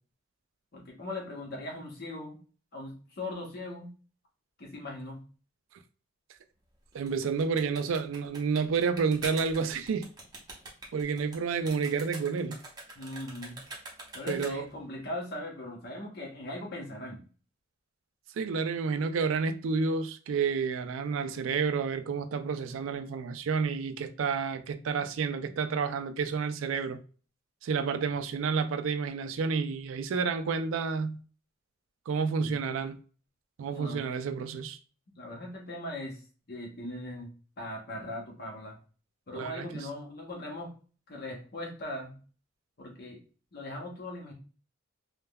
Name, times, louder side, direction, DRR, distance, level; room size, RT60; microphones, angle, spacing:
voice 1, 0.7-2.4 2.7-3.9 4.6-5.2 13.0-13.6 14.1-17.2 32.4-32.6 33.7-34.0 35.1-36.2 36.5-37.3 37.6-38.8 39.3-40.7 41.1-42.2 42.8-43.2 43.5-44.3, left 1 dB, 50° left, 0.8 m, -39 dB
sound 1, 6.9-14.8, right 2 dB, 20° right, 0.7 m, -45 dB
voice 2, 6.9-10.1 10.9-12.6 14.3-14.7 18.4-27.0 27.6-31.2 32.1-33.0 33.6-34.8 39.3-39.7, right 5 dB, 80° right, 0.3 m, -30 dB
3.4 x 2.0 x 2.2 m
head